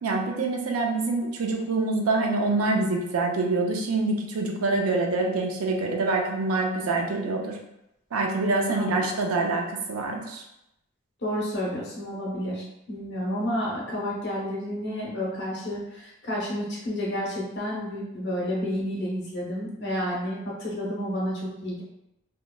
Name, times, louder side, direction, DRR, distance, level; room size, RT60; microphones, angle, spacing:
voice 1, 0.0-7.6 8.1-10.4, right 3 dB, 85° right, 2 dB, 0.4 m, -26 dB
voice 2, 11.2-21.8, equal, 50° left, -4 dB, 0.7 m, -30 dB
3.0 x 2.1 x 2.2 m, 0.85 s
head